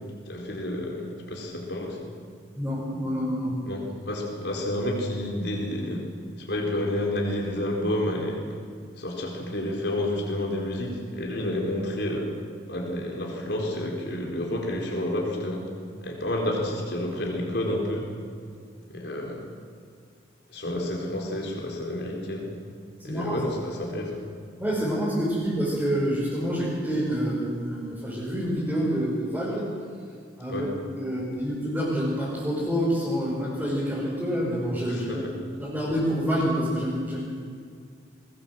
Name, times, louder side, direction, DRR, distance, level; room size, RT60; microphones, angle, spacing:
voice 1, 0.3-2.1 3.6-6.1 6.4-8.4 9.0-12.3 12.7-15.7 16.0-18.1 18.9-19.5 20.5-22.5 23.0-24.2 30.5-30.7 34.9-35.4, left 1 dB, 65° left, -1 dB, 4.3 m, -30 dB
voice 2, 2.6-3.6 20.6-20.8 23.0-23.5 24.6-29.7 30.4-35.3 35.6-37.2, equal, 10° right, -9 dB, 6.0 m, -27 dB
23.5 x 19.0 x 7.7 m, 2.2 s
head